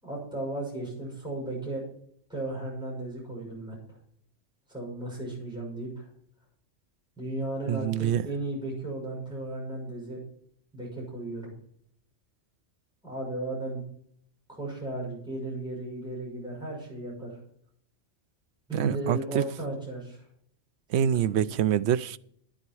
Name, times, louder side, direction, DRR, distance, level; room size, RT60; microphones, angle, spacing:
voice 1, 0.0-1.8 2.3-4.0 4.7-6.1 7.2-10.2 10.7-11.5 13.0-13.8 14.5-17.4 18.7-20.2 21.2-21.5, right 2 dB, 5° right, 6.3 m, -35 dB
voice 2, 7.7-8.2 18.7-19.4 20.9-22.2, right 9 dB, 70° right, 0.9 m, -25 dB
11.5 x 11.0 x 4.7 m
omnidirectional pair, 1.3 m